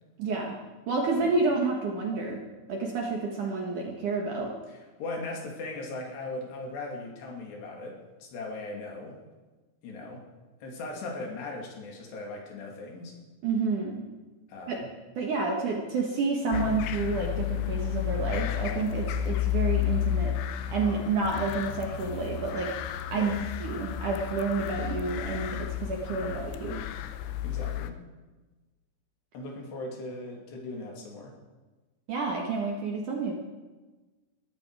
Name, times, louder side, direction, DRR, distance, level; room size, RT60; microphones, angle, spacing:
voice 1, 0.2-0.5 0.9-2.4 2.7-4.5 13.4-14.0 14.7-14.8 15.2-20.3 20.7-22.7 23.1-23.3 23.6-26.8 32.1-33.3, right 3 dB, 55° right, 0 dB, 2.4 m, -29 dB
voice 2, 4.7-9.2 9.8-10.2 10.6-13.2 14.5-14.9 23.1-23.4 27.4-28.0 29.3-31.3, left 2 dB, 70° left, 0 dB, 4.7 m, -39 dB
sound 1, 16.5-27.9, left 11 dB, 85° left, 3.2 m, -32 dB
22.0 x 13.5 x 4.9 m, 1.2 s
omnidirectional pair, 5.2 m